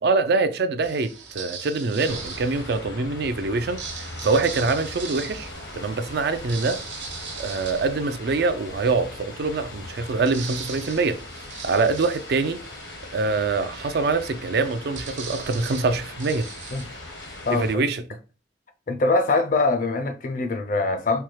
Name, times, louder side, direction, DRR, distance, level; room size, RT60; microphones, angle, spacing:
voice 1, 0.0-6.8 7.4-12.6 13.1-16.5 17.5-18.2, right 3 dB, 60° right, 0.4 m, -24 dB
sound 1, 0.8-3.0 3.6-8.8 9.2-9.3 9.6-17.6, right 6 dB, 80° right, 0.9 m, -40 dB
sound 2, 2.0-17.7, left 2 dB, 85° left, 1.1 m, -40 dB
voice 2, 17.5-17.8 18.9-21.2, left 3 dB, 45° left, 0.4 m, -23 dB
4.3 x 2.2 x 3.1 m
head